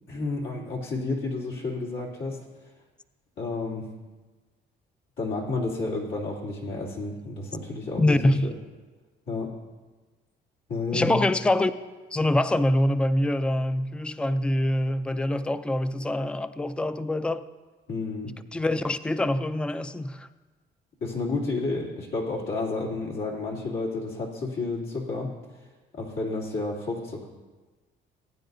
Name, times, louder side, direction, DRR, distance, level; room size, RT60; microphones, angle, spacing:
voice 1, 0.1-2.4 3.4-3.9 5.2-8.5 9.3-9.5 10.7-11.2 17.9-18.3 21.0-25.3 25.9-27.3, left 3 dB, 80° left, 3.0 m, -31 dB
voice 2, 8.0-8.5 10.9-11.7 12.1-17.5 18.5-20.3, left 1 dB, 5° left, 0.4 m, -24 dB
19.0 x 9.4 x 2.7 m
cardioid pair, 90°, 20 cm